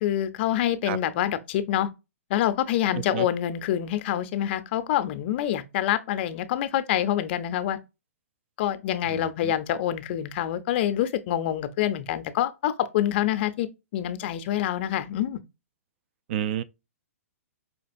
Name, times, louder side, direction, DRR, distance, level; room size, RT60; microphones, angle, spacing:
voice 1, 0.0-1.9 2.3-7.8 8.6-13.7 13.9-15.4, left 11 dB, 50° left, 0.5 m, -26 dB
voice 2, 9.1-9.5 16.3-16.6, right 10 dB, 50° right, 0.4 m, -30 dB
5.0 x 2.8 x 2.5 m
hypercardioid pair, 130°, 8 cm